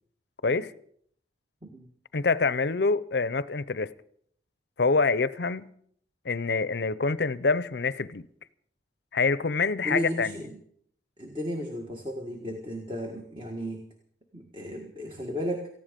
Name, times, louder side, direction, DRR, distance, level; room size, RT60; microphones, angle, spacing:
voice 1, 2.1-3.9 4.8-5.7 6.2-8.3 9.1-10.4, left 4 dB, 60° left, 0.6 m, -26 dB
voice 2, 9.8-10.6 11.2-13.9 14.3-15.7, equal, 25° right, 1.6 m, -34 dB
18.5 x 15.0 x 5.2 m
head